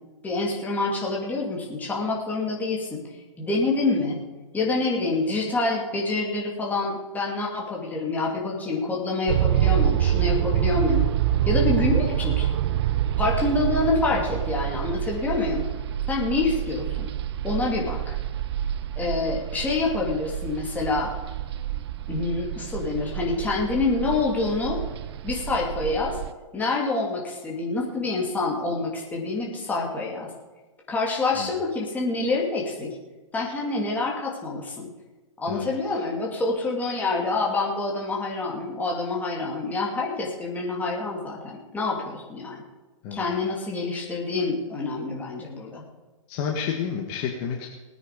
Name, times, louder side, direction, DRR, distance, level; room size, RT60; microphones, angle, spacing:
voice 1, 0.2-3.0 3.4-4.2 4.5-11.1 11.4-12.5 13.2-15.6 16.1-17.1 17.4-18.1 18.9-21.1 22.1-24.8 25.2-26.2 26.5-30.3 30.9-32.9 33.3-34.9 35.4-42.6 43.1-45.8, left 3 dB, 10° left, -2 dB, 2.9 m, -27 dB
sound 1, 9.3-26.3, right 11 dB, 50° right, 0.8 m, -27 dB
voice 2, 35.5-35.9 43.0-43.2 46.3-47.7, left 7 dB, 35° left, 1 dB, 1.8 m, -30 dB
19.5 x 9.2 x 5.3 m, 1.2 s
hypercardioid pair, 145°, 17 cm